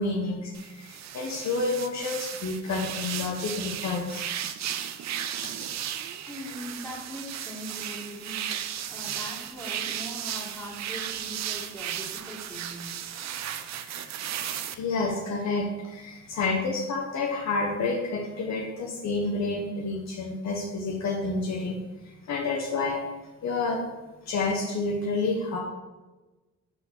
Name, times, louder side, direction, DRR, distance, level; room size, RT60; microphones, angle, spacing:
voice 1, 0.0-4.3 14.4-21.8 22.0-23.0 23.4-23.8 24.3-25.6, left 3 dB, 65° left, -1 dB, 1.1 m, -29 dB
sound 1, 0.5-14.7, right 10 dB, 60° right, 0.6 m, -35 dB
voice 2, 6.3-12.9, equal, 5° left, -10 dB, 2.3 m, -41 dB
6.4 x 4.1 x 6.1 m, 1.2 s
cardioid pair, 90°, 30 cm